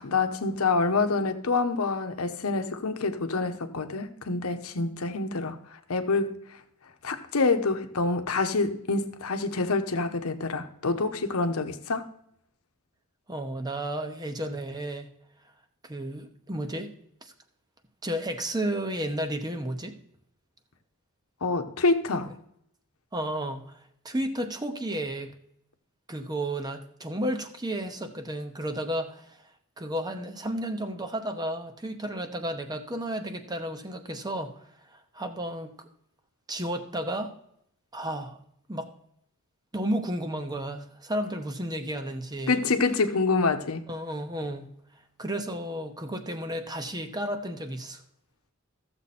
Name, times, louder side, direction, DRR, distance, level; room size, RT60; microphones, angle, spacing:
voice 1, 0.0-6.4 7.0-12.1 21.4-22.3 42.5-43.8, left 3 dB, 90° left, 0.9 m, -27 dB
voice 2, 13.3-15.1 15.8-16.9 17.2-17.3 18.0-19.9 23.1-25.4 26.1-29.4 29.8-34.5 34.9-35.9 36.5-37.3 37.9-38.4 38.7-38.9 39.7-42.6 43.9-44.7 45.2-48.0, right 1 dB, 20° right, 0.9 m, -32 dB
13.5 x 7.2 x 4.2 m
head